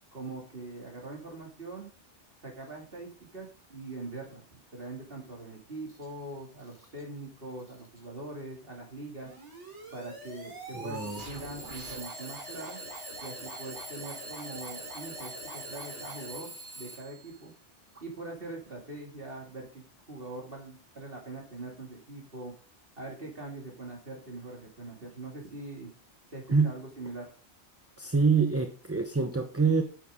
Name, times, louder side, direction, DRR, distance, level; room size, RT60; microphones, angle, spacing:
voice 1, 0.1-1.9 2.4-4.4 4.7-9.3 9.9-12.8 13.2-17.5 18.0-22.5 23.0-25.9 26.3-27.3, right 2 dB, 55° right, -1 dB, 2.7 m, -42 dB
Alarm / Clock, 5.9-6.0 6.6-7.0 7.6-8.0 8.9-9.0 10.9-17.3, right 2 dB, 20° left, 5.1 m, -45 dB
sound 1, 9.2-16.4, right 1 dB, 90° right, 3.4 m, -45 dB
voice 2, 10.7-11.2 26.5-26.7 28.0-29.8, right 4 dB, 15° right, 6 dB, 0.8 m, -26 dB
9.7 x 9.3 x 3.6 m, 0.37 s
omnidirectional pair, 1.2 m